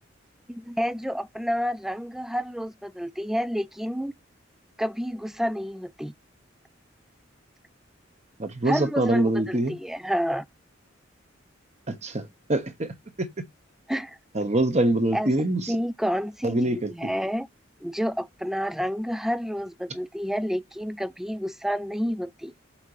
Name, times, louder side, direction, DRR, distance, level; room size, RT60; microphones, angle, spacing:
voice 1, 0.5-4.1 4.8-6.1 8.7-10.4 13.9-14.2 15.1-15.3 15.7-17.5 17.8-22.5, equal, ahead, 0.3 m, -29 dB
voice 2, 8.4-9.8 11.9-13.3 14.3-15.6 16.4-16.9, right 1 dB, 35° right, 1.1 m, -25 dB
6.8 x 5.8 x 3.1 m
head